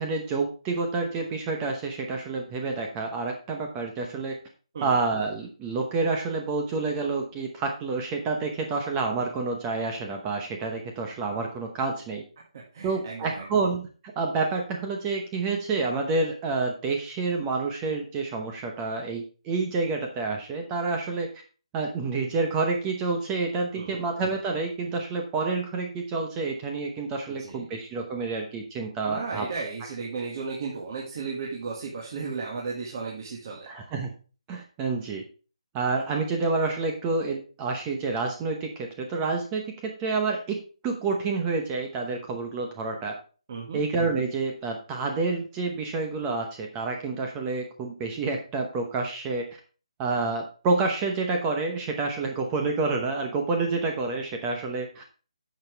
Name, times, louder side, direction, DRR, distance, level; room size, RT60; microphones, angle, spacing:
voice 1, 0.0-4.3 4.8-12.2 12.8-13.9 14.2-21.3 21.7-29.5 33.7-34.1 34.5-35.2 35.7-43.1 43.7-49.4 50.0-55.0, right 3 dB, 15° right, 3 dB, 0.9 m, -28 dB
voice 2, 12.5-13.4 23.7-24.0 27.4-27.7 29.1-33.7 43.5-43.8, right 4 dB, 35° right, -3 dB, 2.0 m, -35 dB
10.5 x 7.2 x 3.4 m, 0.37 s
hypercardioid pair, 170°, 3 cm